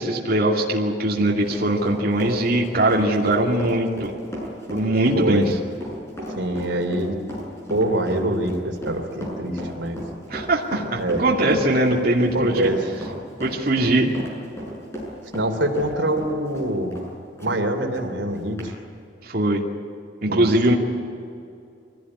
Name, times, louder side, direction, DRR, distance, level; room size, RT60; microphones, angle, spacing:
voice 1, 0.0-4.1 4.7-5.6 10.3-12.7 13.4-14.1 19.2-19.6 20.2-20.7, right 1 dB, 50° right, -2 dB, 2.6 m, -21 dB
Run, 0.9-17.6 17.9-18.1 18.6-18.7, equal, 15° left, 7.2 m, -35 dB
voice 2, 5.1-5.5 6.3-7.2 7.7-10.0 10.9-11.2 12.3-12.8 15.3-17.0 17.4-18.7 20.3-20.5, right 1 dB, 80° right, 5 dB, 3.0 m, -24 dB
24.0 x 17.0 x 9.8 m, 2.5 s
head